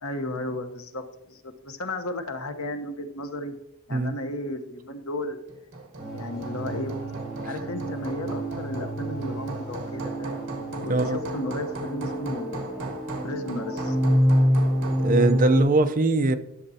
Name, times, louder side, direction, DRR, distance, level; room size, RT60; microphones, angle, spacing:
voice 1, 0.0-3.5 3.9-5.4 6.1-6.9 7.4-10.5 10.8-12.8 13.2-14.0, left 1 dB, 75° left, 1.0 m, -34 dB
Hammer, 5.5-15.1, right 2 dB, 60° right, 1.6 m, -37 dB
sound 1, 6.0-15.6, equal, 5° right, 3.4 m, -27 dB
voice 2, 15.0-16.3, right 2 dB, 40° right, 0.5 m, -21 dB
12.5 x 6.9 x 2.7 m
head